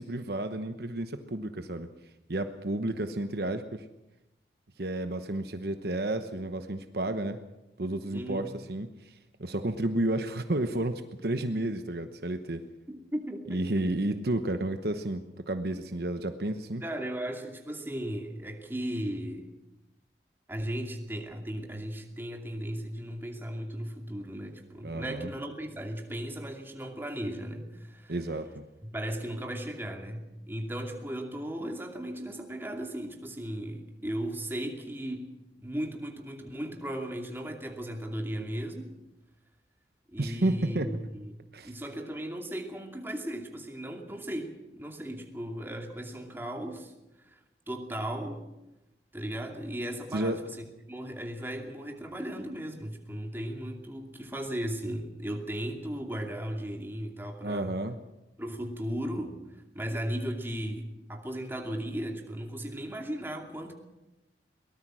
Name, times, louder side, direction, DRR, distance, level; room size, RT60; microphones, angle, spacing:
voice 1, 0.0-1.9 2.3-3.9 4.8-7.4 7.8-9.1 9.4-12.6 13.5-16.8 24.8-25.3 28.1-28.6 40.2-40.9 41.5-41.7 50.1-50.4 57.4-58.0, right 1 dB, 60° right, 8 dB, 1.0 m, -31 dB
voice 2, 8.1-8.5 12.9-13.6 16.8-19.5 20.5-28.1 28.8-35.3 35.6-38.9 40.1-41.3 41.6-46.9 47.2-47.4 47.7-48.4 49.1-57.8 58.4-63.7, right 1 dB, 15° right, 2 dB, 2.6 m, -36 dB
23.0 x 18.5 x 6.3 m, 0.95 s
head